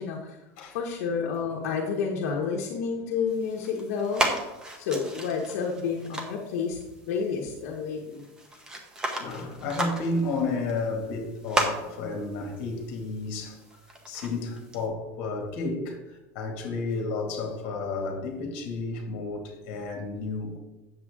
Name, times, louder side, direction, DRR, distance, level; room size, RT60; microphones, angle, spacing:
voice 1, 0.0-0.4 0.7-4.3 4.8-6.8 7.1-8.2, left 5 dB, 70° left, 1.3 m, -30 dB
sound 1, 3.3-14.9, right 1 dB, 10° right, 0.9 m, -35 dB
voice 2, 9.2-13.6 14.1-20.6, left 3 dB, 50° left, 2.1 m, -32 dB
8.9 x 7.5 x 3.7 m
supercardioid pair, 175°, 8 cm